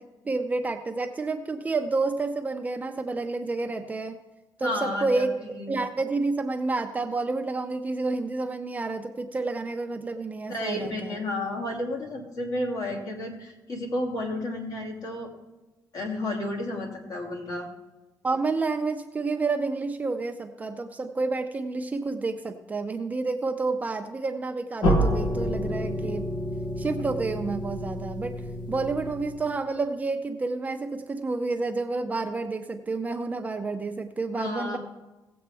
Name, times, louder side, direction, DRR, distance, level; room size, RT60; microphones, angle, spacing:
voice 1, 0.2-4.2 4.6-5.3 5.7-11.2 18.2-26.3 26.8-28.4 28.7-34.8, right 3 dB, 20° right, 6 dB, 0.5 m, -29 dB
voice 2, 4.6-5.8 10.5-15.3 15.9-17.7 34.4-34.8, left 1 dB, 50° left, 1 dB, 2.3 m, -32 dB
sound 1, 24.8-29.6, equal, 80° left, 1.8 m, -28 dB
17.5 x 7.7 x 3.4 m, 1.1 s
cardioid pair, 150°, 7 cm